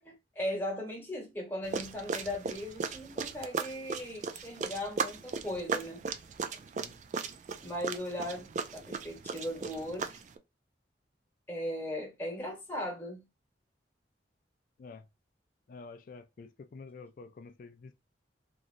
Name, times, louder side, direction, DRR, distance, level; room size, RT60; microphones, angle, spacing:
voice 1, 0.0-6.0 7.6-10.2 11.5-13.2, left 1 dB, 10° left, 1.3 m, -38 dB
sound 1, 1.6-10.4, right 5 dB, 45° right, 0.3 m, -37 dB
voice 2, 15.7-17.9, left 4 dB, 50° left, 0.3 m, -49 dB
3.0 x 2.4 x 2.5 m
head